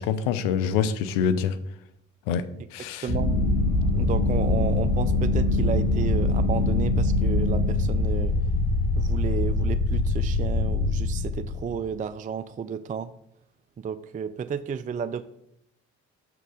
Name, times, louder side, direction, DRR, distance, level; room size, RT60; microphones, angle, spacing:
voice 1, 0.0-1.5 2.3-2.4 2.7-3.1, left 7 dB, 80° left, 12 dB, 0.6 m, -25 dB
voice 2, 3.0-3.4 4.0-8.3 9.0-13.1 13.8-15.3, right 7 dB, 25° right, 12 dB, 0.4 m, -32 dB
sound 1, 3.1-11.8, left 2 dB, 65° left, 1.9 m, -23 dB
6.5 x 3.8 x 6.2 m, 0.75 s
hypercardioid pair, 50°, 37 cm